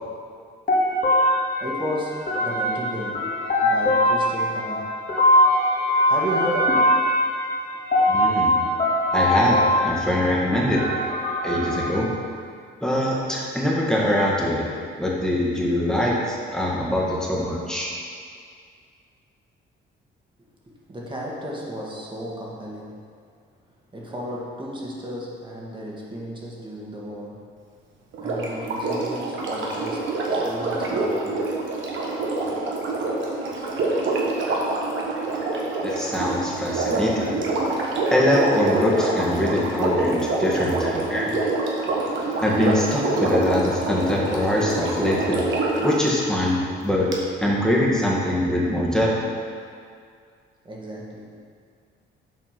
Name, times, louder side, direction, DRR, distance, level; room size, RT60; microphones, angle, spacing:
sound 1, 0.7-12.0, left 1 dB, 40° left, 1.9 m, -22 dB
voice 1, 1.6-3.3 3.6-5.1 6.1-7.1 20.4-23.1 23.9-27.5 28.2-31.5 50.6-51.4, equal, 25° right, -4 dB, 1.8 m, -33 dB
voice 2, 8.1-8.6 9.1-9.6 9.8-10.9 11.4-12.1 12.8-14.7 15.0-17.9 35.8-37.5 38.1-41.4 42.4-47.1 47.4-49.1, left 1 dB, 5° left, -4 dB, 1.8 m, -23 dB
Sink (filling or washing), 28.1-45.9 47.1-47.2, right 2 dB, 75° right, 1.3 m, -26 dB
7.7 x 4.3 x 5.9 m, 2.2 s
cardioid pair, 90°, 20 cm